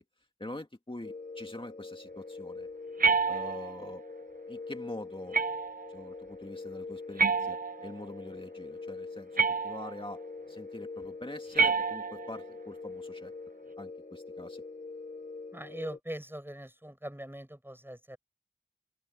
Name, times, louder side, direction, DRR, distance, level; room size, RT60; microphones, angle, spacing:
voice 1, 0.4-2.7 3.3-4.0 4.5-5.4 5.9-13.3 13.8-14.6, left 1 dB, 35° left, 2.3 m, -44 dB
sound 1, 1.0-16.0, left 3 dB, 60° left, 1.4 m, -44 dB
sound 2, 3.0-3.9 5.3-5.9 7.2-8.1 9.4-10.1 11.5-12.4, right 5 dB, 85° right, 0.5 m, -28 dB
voice 2, 15.5-18.2, right 1 dB, 15° right, 6.2 m, -42 dB
open air
wide cardioid pair, 50°, 14 cm